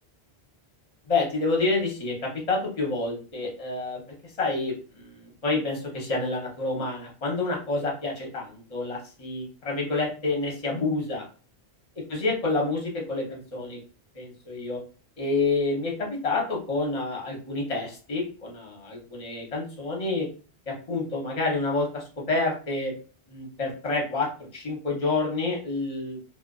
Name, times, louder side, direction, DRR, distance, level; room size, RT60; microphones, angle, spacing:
voice 1, 1.1-4.0 4.4-11.2 12.1-13.8 14.1-14.8 15.2-20.3 20.7-22.9 23.3-26.2, left 3 dB, 35° left, -2 dB, 0.8 m, -28 dB
2.4 x 2.2 x 2.3 m, 0.37 s
omnidirectional pair, 1.1 m